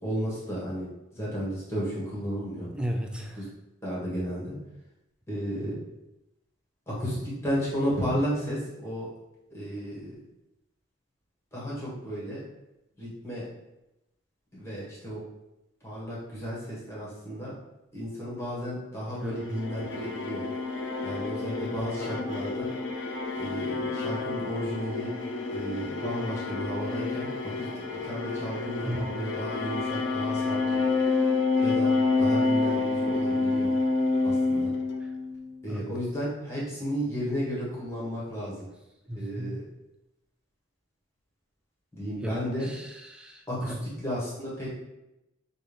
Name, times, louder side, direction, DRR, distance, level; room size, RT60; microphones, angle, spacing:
voice 1, 0.0-0.9 1.2-2.7 3.8-4.5 5.3-5.8 6.9-7.2 7.4-9.1 9.5-10.1 11.5-12.4 13.0-13.4 14.5-15.2 15.8-17.5 17.9-20.4 21.0-22.7 23.4-25.1 25.5-27.3 27.5-30.8 31.6-31.9 32.2-33.7 34.2-34.7 35.6-38.6 39.1-39.6 42.0-42.7 43.5-43.7 44.0-44.8, equal, 15° left, -7 dB, 1.5 m, -33 dB
voice 2, 2.7-3.5 19.2-19.5 28.8-29.2 35.0-35.1 35.7-35.9 39.1-39.6 42.2-43.8, equal, 5° right, 3 dB, 0.4 m, -35 dB
sound 1, 19.3-35.6, left 3 dB, 65° left, 0.5 m, -28 dB
5.7 x 2.5 x 3.5 m, 0.93 s
head